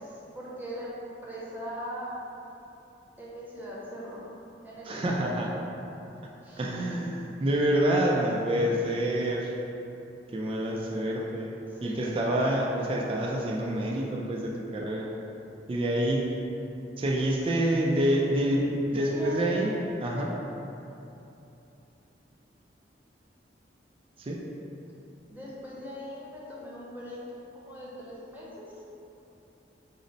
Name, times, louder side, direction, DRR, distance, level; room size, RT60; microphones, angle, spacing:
voice 1, 0.0-2.1 3.2-4.3 4.6-5.0 6.4-7.0 8.2-8.3 11.7-12.3 18.9-19.8 20.1-20.3 25.3-27.2 27.5-28.8, equal, 10° right, -7 dB, 0.7 m, -40 dB
voice 2, 4.8-5.5 6.6-9.5 10.3-15.1 15.7-16.4 17.0-19.7 20.0-20.3 24.2-24.4, right 1 dB, 30° right, -2 dB, 0.3 m, -27 dB
5.1 x 2.0 x 3.9 m, 2.9 s
head